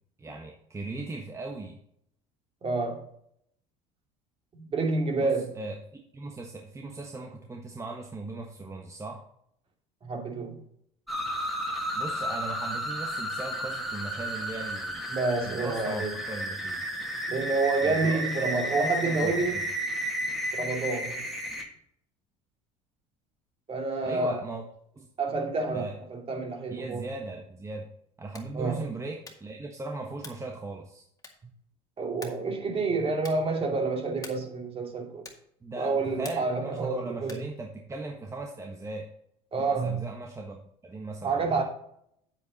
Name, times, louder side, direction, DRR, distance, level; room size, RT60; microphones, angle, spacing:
voice 1, 0.2-1.8 5.2-9.2 11.9-15.1 15.4-16.8 17.8-19.6 24.0-24.6 24.9-25.1 25.7-26.0 26.7-27.9 28.2-31.0 35.6-39.1 39.6-41.6, right 2 dB, 20° right, 2 dB, 1.3 m, -38 dB
voice 2, 2.6-3.0 4.5-5.5 10.0-10.6 15.1-16.1 17.3-19.6 20.5-21.2 23.7-24.4 25.2-27.0 28.5-28.8 32.0-35.2 35.8-37.4 39.5-40.0 41.2-41.6, right 3 dB, 35° right, 2 dB, 2.6 m, -28 dB
sound 1, 11.1-21.6, equal, ahead, 2.4 m, -33 dB
sound 2, 28.2-28.6 29.2-29.6 30.2-30.5 31.2-31.6 32.2-32.5 33.2-33.5 34.2-34.6 35.2-35.6 36.2-36.6 37.2-37.6, left 3 dB, 20° left, 2.1 m, -47 dB
8.4 x 8.4 x 4.1 m, 0.71 s
supercardioid pair, 85°, 16 cm